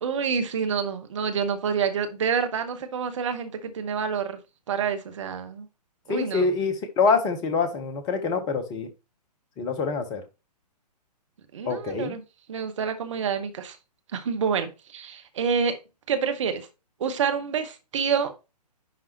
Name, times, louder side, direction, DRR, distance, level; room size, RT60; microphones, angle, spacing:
voice 1, 0.0-4.4 4.7-5.7 6.1-6.5 11.5-12.2 12.5-13.8 14.1-15.8 16.1-16.7 17.0-18.3, right 6 dB, 45° right, 1.2 m, -27 dB
voice 2, 6.1-8.9 9.6-10.2 11.7-12.2, left 4 dB, 20° left, 1.0 m, -25 dB
10.5 x 3.6 x 3.0 m
figure-of-eight pair, 130°, 21 cm